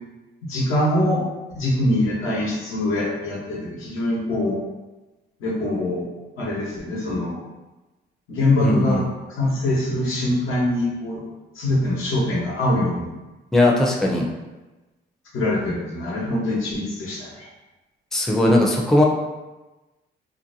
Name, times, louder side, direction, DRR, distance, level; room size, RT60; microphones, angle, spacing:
voice 1, 0.5-1.2 1.5-4.6 5.4-6.1 6.4-7.4 8.3-9.0 9.3-11.2 11.6-13.1 15.3-17.5, left 1 dB, 90° left, -5 dB, 0.9 m, -23 dB
voice 2, 8.6-9.0 13.5-14.3 18.1-19.0, left 1 dB, ahead, -1 dB, 0.4 m, -18 dB
2.6 x 2.2 x 2.6 m, 1.1 s
cardioid pair, 90°, 20 cm